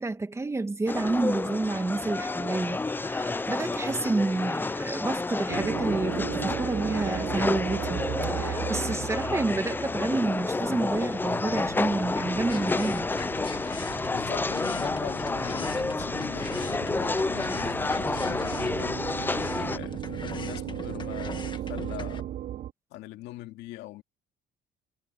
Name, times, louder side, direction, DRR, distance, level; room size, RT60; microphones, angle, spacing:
voice 1, 0.0-8.0 8.3-13.4, right 3 dB, 15° right, 2.1 m, -29 dB
sound 1, 0.9-19.8, left 3 dB, 10° left, 0.4 m, -30 dB
sound 2, 5.5-22.7, right 11 dB, 65° right, 4.2 m, -37 dB
sound 3, 12.5-22.2, left 5 dB, 25° left, 2.0 m, -42 dB
voice 2, 14.1-19.1 19.7-22.3 22.9-24.0, left 16 dB, 90° left, 2.6 m, -42 dB
cardioid pair, 110°, 17 cm